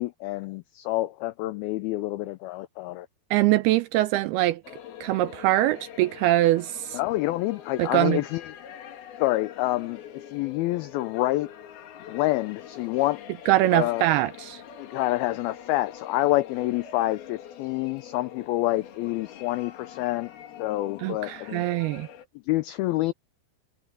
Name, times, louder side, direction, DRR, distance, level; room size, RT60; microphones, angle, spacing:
voice 1, 0.0-3.1 6.9-8.5 9.2-10.0 10.3-11.5 12.1-13.2 13.7-14.0 14.8-20.3 20.6-21.7 22.5-23.1, left 17 dB, 85° left, 2.1 m, -27 dB
voice 2, 3.3-4.6 5.0-7.0 7.8-8.2 13.5-14.6 21.0-22.1, right 16 dB, 80° right, 2.3 m, -23 dB
sound 1, 4.6-22.3, left 9 dB, 65° left, 3.7 m, -44 dB
omnidirectional pair, 5.0 m